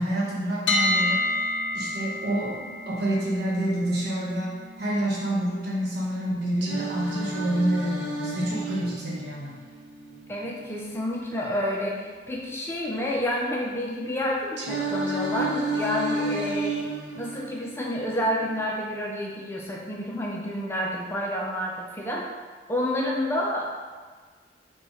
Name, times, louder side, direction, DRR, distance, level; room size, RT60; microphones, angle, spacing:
voice 1, 0.0-1.3 1.7-4.5 4.8-9.5, right 1 dB, 60° right, -5 dB, 1.2 m, -28 dB
sound 1, 0.7-12.6, left 2 dB, 70° left, 0.5 m, -33 dB
Singing, 6.6-10.6 14.6-18.6, right 2 dB, 75° right, 0.7 m, -31 dB
voice 2, 10.3-16.8 17.1-22.3 22.7-23.7, equal, 15° left, -2 dB, 0.4 m, -29 dB
4.3 x 2.3 x 4.7 m, 1.5 s
head